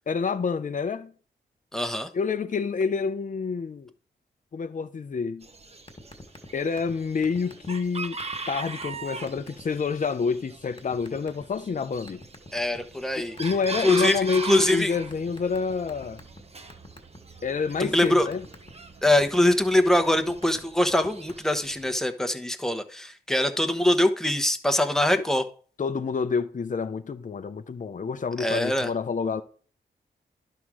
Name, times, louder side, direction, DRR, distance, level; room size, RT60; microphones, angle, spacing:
voice 1, 0.1-1.1 2.1-3.9 4.5-5.5 6.5-8.2 8.5-12.2 13.2-16.2 17.4-18.4 25.8-29.4, left 5 dB, 45° left, 0.6 m, -28 dB
voice 2, 1.7-2.1 12.5-13.4 13.8-14.9 17.8-18.3 19.0-25.5 28.4-28.9, left 1 dB, ahead, 1.1 m, -23 dB
Chicken rooster, 5.4-22.0, right 3 dB, 35° right, 1.0 m, -40 dB
sound 1, 5.9-6.5 6.8-7.0 7.2-7.9 8.2-8.4 8.8-9.0 9.3-9.6 10.8-11.4 12.1-13.0 13.4-14.6 15.1-16.4 16.7-17.2 17.6-19.2 19.8-20.6 20.8-21.3, left 2 dB, 30° left, 1.9 m, -45 dB
11.0 x 3.8 x 6.2 m
cardioid pair, 65°, 18 cm